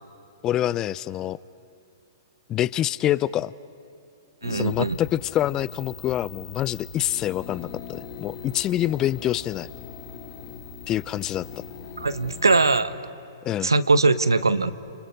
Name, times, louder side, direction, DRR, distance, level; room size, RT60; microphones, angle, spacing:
voice 1, 0.4-1.4 2.5-3.5 4.5-9.7 10.9-11.4 13.4-13.7, left 12 dB, 25° left, 20 dB, 0.6 m, -26 dB
sound 1, 4.4-12.8, left 6 dB, 45° left, 4.3 m, -41 dB
voice 2, 4.4-5.0 12.0-12.9 13.6-14.7, right 3 dB, 90° right, 14 dB, 1.0 m, -21 dB
29.5 x 29.0 x 5.3 m, 2.9 s
hypercardioid pair, 120°, 2 cm